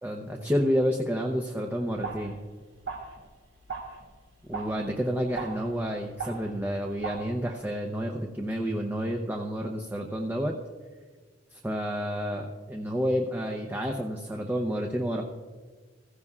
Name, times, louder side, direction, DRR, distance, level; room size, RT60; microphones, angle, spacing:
voice 1, 0.0-2.3 4.5-10.5 11.5-15.2, equal, 10° right, 0 dB, 0.7 m, -30 dB
sound 1, 2.0-7.2, right 5 dB, 75° right, 2.3 m, -40 dB
16.0 x 15.0 x 2.4 m, 1.4 s
head